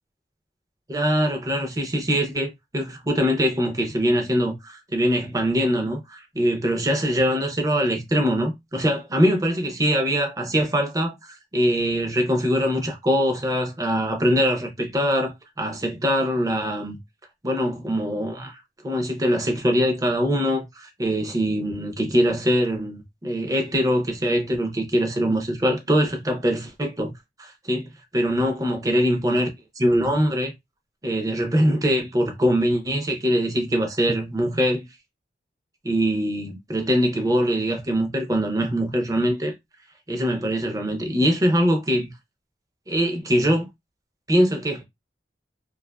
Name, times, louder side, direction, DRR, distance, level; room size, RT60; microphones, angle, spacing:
voice 1, 0.9-17.0 17.4-27.1 27.4-27.9 28.1-29.5 29.8-30.5 31.0-34.9 35.8-39.5 40.1-42.1 42.9-43.7 44.3-44.8, equal, 20° right, 0.6 m, -23 dB
2.5 x 2.4 x 2.2 m
head